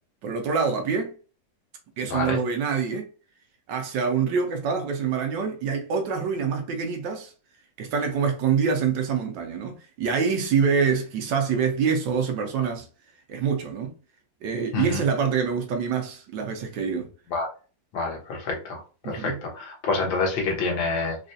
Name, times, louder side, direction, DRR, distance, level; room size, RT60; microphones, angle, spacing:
voice 1, 0.2-1.1 2.0-3.1 3.7-7.3 7.8-12.9 13.3-13.9 14.4-17.1 19.0-19.4, right 6 dB, 75° right, 1.4 m, -25 dB
voice 2, 17.9-21.2, left 3 dB, 85° left, 1.7 m, -27 dB
4.1 x 2.3 x 2.6 m
omnidirectional pair, 2.0 m